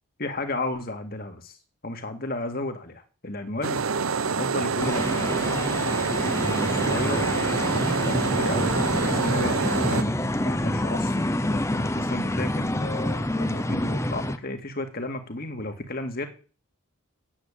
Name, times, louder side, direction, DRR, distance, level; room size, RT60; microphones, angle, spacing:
voice 1, 0.2-1.6 1.8-3.8 4.3-5.4 6.1-16.3, left 2 dB, 45° left, 6 dB, 2.0 m, -33 dB
sound 1, 3.6-10.0, right 5 dB, 90° right, 0.8 m, -26 dB
sound 2, 4.8-14.4, left 1 dB, 15° left, 0.7 m, -27 dB
9.9 x 7.9 x 8.5 m, 0.36 s
head